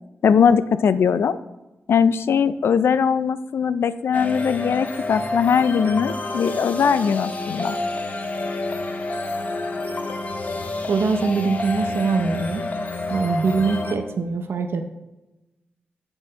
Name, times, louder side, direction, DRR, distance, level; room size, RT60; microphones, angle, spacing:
voice 1, 0.2-1.4 1.9-7.8, left 7 dB, 80° left, 14 dB, 0.4 m, -20 dB
sound 1, 4.1-14.0, left 2 dB, 40° left, 0.8 m, -29 dB
voice 2, 10.9-12.7 13.1-14.8, right 4 dB, 70° right, 6 dB, 0.6 m, -23 dB
7.6 x 5.9 x 3.8 m, 1.0 s
wide cardioid pair, 85°, 4 cm